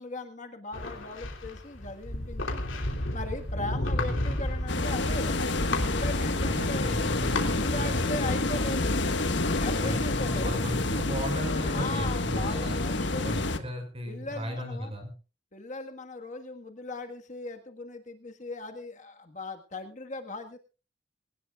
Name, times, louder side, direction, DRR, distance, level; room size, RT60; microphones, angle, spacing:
voice 1, 0.0-2.8 3.1-5.4 5.9-9.0 9.6-10.5 11.5-13.3 14.1-14.9 15.5-20.6, left 2 dB, 40° left, 5 dB, 1.6 m, -38 dB
sound 1, 0.7-8.1, left 1 dB, 90° left, 3.0 m, -33 dB
voice 2, 4.0-4.4 6.4-8.4 9.8-12.8 13.2-15.1, equal, 30° right, 5 dB, 6.0 m, -35 dB
sound 2, 4.7-13.6, left 2 dB, 65° left, 1.5 m, -28 dB
21.5 x 18.5 x 2.4 m, 0.34 s
head